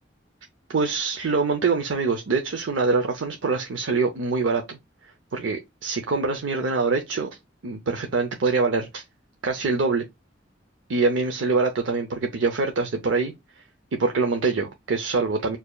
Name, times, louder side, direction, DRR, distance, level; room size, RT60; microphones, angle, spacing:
voice 1, 0.7-4.8 5.3-7.3 7.6-9.0 9.4-10.1 10.9-13.6 13.9-15.6, right 4 dB, 85° right, 0.6 m, -24 dB
6.6 x 2.8 x 2.2 m
head